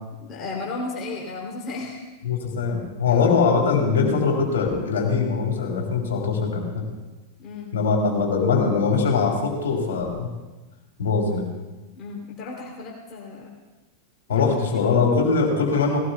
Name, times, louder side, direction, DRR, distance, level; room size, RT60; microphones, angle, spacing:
voice 1, 0.3-2.1 3.1-3.3 7.4-7.7 12.0-13.5 14.3-14.5 14.7-14.9, left 3 dB, 30° left, -4 dB, 3.0 m, -34 dB
voice 2, 2.2-6.9 7.7-10.3 11.0-11.5 14.3-16.0, left 5 dB, 60° left, 1 dB, 3.1 m, -22 dB
19.5 x 17.5 x 2.3 m, 1.2 s
figure-of-eight pair, 90°, 0 cm